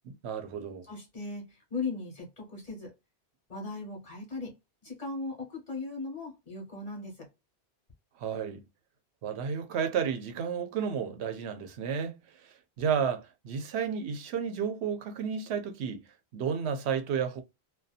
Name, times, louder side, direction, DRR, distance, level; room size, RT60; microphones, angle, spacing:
voice 1, 0.1-0.9 8.2-8.6 9.2-12.2 12.8-16.0 16.3-17.4, right 7 dB, 80° right, 0.8 m, -32 dB
voice 2, 0.9-2.9 3.5-4.5 4.8-7.3, left 3 dB, 35° left, 1.1 m, -38 dB
2.6 x 2.3 x 2.3 m
omnidirectional pair, 1.1 m